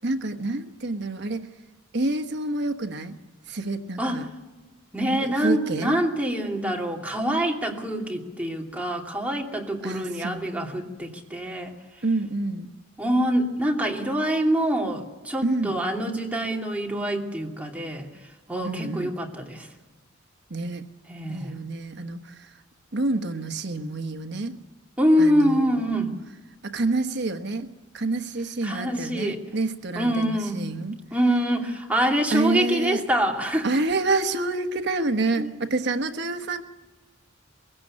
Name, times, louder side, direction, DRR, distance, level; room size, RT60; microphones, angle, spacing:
voice 1, 0.0-1.5 1.9-3.2 3.5-4.3 5.2-5.9 9.8-10.5 12.0-12.7 15.4-15.8 18.6-19.1 20.5-20.8 21.3-22.5 22.9-24.6 25.2-25.9 26.6-27.7 27.9-31.0 32.3-33.0 33.6-36.6, right 2 dB, 60° right, 8 dB, 1.3 m, -28 dB
voice 2, 4.9-11.7 13.0-18.1 18.5-19.7 21.1-21.5 25.0-26.1 28.6-29.4 30.0-30.6 31.1-33.7 35.4-35.5, equal, 5° right, 0 dB, 2.7 m, -25 dB
23.0 x 16.5 x 8.8 m, 1.2 s
head